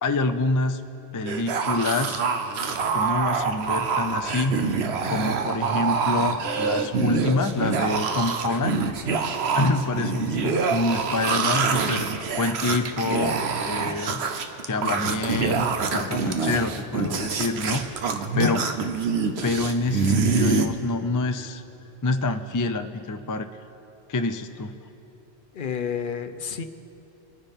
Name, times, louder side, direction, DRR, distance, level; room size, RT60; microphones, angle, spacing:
voice 1, 0.0-0.8 1.1-2.2 2.9-4.6 5.1-8.7 9.5-12.1 12.4-14.2 14.6-18.0 18.3-18.6 19.4-21.6 22.0-23.5 24.1-24.7, left 2 dB, 30° left, 8 dB, 0.3 m, -26 dB
sound 1, 1.3-20.7, right 5 dB, 85° right, 1.1 m, -26 dB
voice 2, 25.5-26.6, left 7 dB, 60° left, 9 dB, 0.8 m, -30 dB
25.5 x 9.7 x 3.6 m, 2.9 s
omnidirectional pair, 1.1 m